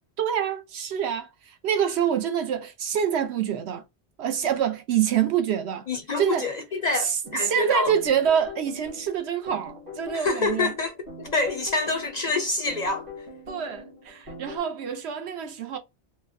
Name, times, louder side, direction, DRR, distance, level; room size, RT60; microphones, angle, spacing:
voice 1, 0.2-3.8 4.2-5.8 6.2-6.5 6.9-10.7 13.5-15.8, right 8 dB, 75° right, 0.9 m, -26 dB
voice 2, 5.9-7.9 10.1-13.1, left 3 dB, 55° left, 0.5 m, -27 dB
sound 1, 7.2-14.6, left 3 dB, 40° right, 1.6 m, -42 dB
4.3 x 2.1 x 2.5 m
omnidirectional pair, 1.1 m